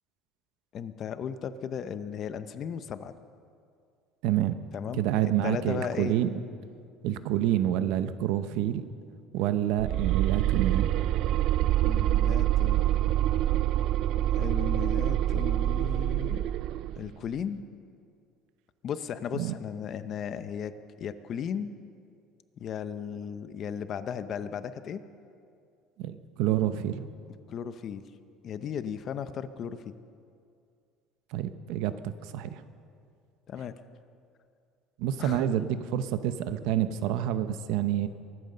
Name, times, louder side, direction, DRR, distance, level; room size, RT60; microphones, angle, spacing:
voice 1, 0.7-3.1 4.7-6.2 11.8-13.0 14.3-16.4 17.0-17.6 18.8-21.7 22.6-25.0 27.5-28.0 28.4-29.9 33.5-33.8 35.2-35.5, left 8 dB, 35° left, 12 dB, 0.6 m, -36 dB
voice 2, 4.2-4.6 4.9-6.3 7.0-8.8 9.3-10.9 19.4-19.5 26.0-27.0 31.3-32.6 35.0-38.1, right 11 dB, 65° right, 11 dB, 0.8 m, -28 dB
sound 1, 9.8-17.0, right 13 dB, 50° right, 0.3 m, -26 dB
23.0 x 9.2 x 6.7 m, 2.3 s
cardioid pair, 165°, 0 cm